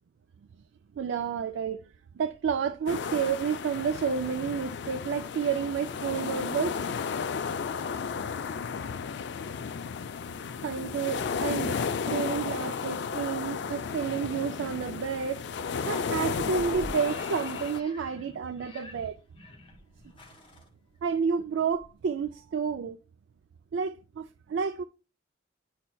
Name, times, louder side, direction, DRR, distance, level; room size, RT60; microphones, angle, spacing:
voice 1, 1.0-1.9 2.1-6.9 10.6-11.8 12.1-15.4 15.9-19.2 21.0-23.0 23.7-24.8, right 6 dB, 80° right, 0.4 m, -30 dB
sound 1, 2.9-17.8, left 6 dB, 65° left, 0.4 m, -33 dB
sound 2, 16.2-21.4 21.8-21.9, left 1 dB, 30° left, 1.6 m, -46 dB
10.0 x 4.3 x 2.3 m
head